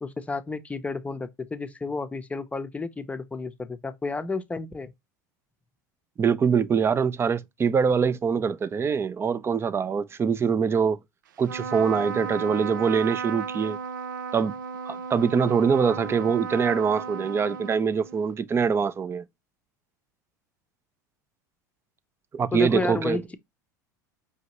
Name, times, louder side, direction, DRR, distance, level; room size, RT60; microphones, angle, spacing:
voice 1, 0.0-4.9 22.5-23.4, left 3 dB, 15° left, 0.7 m, -31 dB
voice 2, 6.2-11.0 11.4-13.8 14.3-14.5 14.9-19.2 22.3-23.2, right 6 dB, 25° right, 0.5 m, -24 dB
Trumpet, 11.4-18.3, right 6 dB, 85° right, 0.4 m, -34 dB
5.3 x 2.7 x 2.9 m
hypercardioid pair, 90°, 10 cm